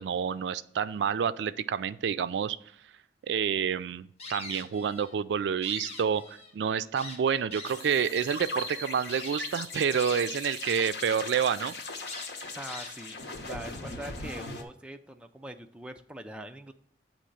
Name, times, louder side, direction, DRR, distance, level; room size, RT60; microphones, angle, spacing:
voice 1, 0.0-2.6 3.3-11.7, right 7 dB, 80° right, 14 dB, 0.3 m, -28 dB
sound 1, 4.2-5.1 5.5-6.5 7.0-7.9 8.5-8.6 9.1-9.3 10.0-11.1 11.4-11.5 12.1-13.2, left 3 dB, 35° left, 1.1 m, -43 dB
sound 2, 7.7-14.6, left 3 dB, 80° left, 1.0 m, -39 dB
voice 2, 12.5-13.2 13.4-16.7, right 1 dB, 5° right, 5 dB, 0.4 m, -42 dB
8.6 x 3.0 x 6.5 m, 0.65 s
head